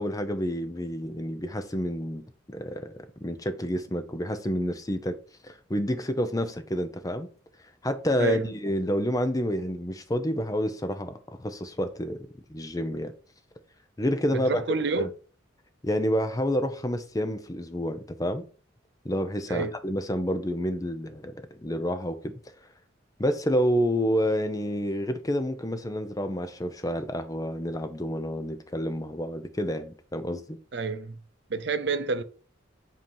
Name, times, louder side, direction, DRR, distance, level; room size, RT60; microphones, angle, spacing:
voice 1, 0.0-5.2 5.4-7.3 7.8-13.1 14.0-14.6 15.0-15.1 15.8-18.4 19.0-22.3 23.2-30.6, equal, 20° left, 0.6 m, -29 dB
voice 2, 14.5-15.1 19.5-19.7 30.7-31.2 31.5-32.2, right 4 dB, 60° right, 0.6 m, -28 dB
7.9 x 2.8 x 5.3 m
head